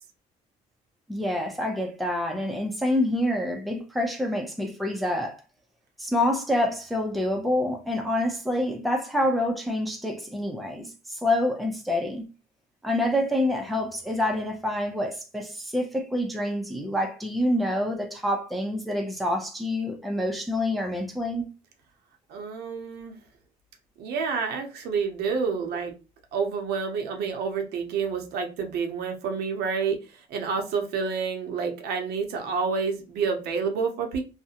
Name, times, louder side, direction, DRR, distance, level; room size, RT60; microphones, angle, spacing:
voice 1, 1.1-5.4 6.0-12.2 12.8-21.4, left 1 dB, ahead, 0.5 m, -27 dB
voice 2, 22.3-23.2 24.0-26.0 26.3-34.2, right 5 dB, 75° right, 0.6 m, -29 dB
2.4 x 2.1 x 2.8 m
cardioid pair, 110°, 17 cm